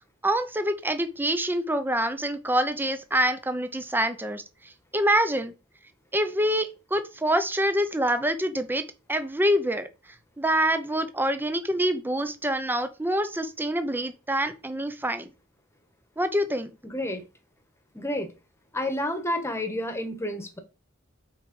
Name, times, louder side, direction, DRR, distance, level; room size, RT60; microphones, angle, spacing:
voice 1, 0.2-5.5 6.1-8.8 9.1-9.9 10.4-15.3 16.2-16.7, right 1 dB, 10° right, 0.7 m, -26 dB
voice 2, 16.8-17.2 17.9-18.3 18.7-20.6, left 1 dB, 15° left, 1.3 m, -30 dB
6.2 x 4.7 x 5.4 m
head